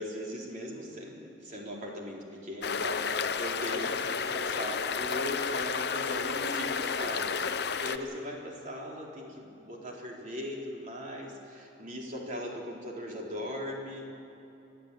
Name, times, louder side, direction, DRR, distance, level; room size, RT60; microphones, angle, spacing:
voice 1, 0.0-14.1, equal, 45° right, -2 dB, 3.8 m, -39 dB
sound 1, 2.6-8.0, left 5 dB, 60° left, 0.8 m, -31 dB
29.5 x 11.5 x 8.5 m, 2.9 s
head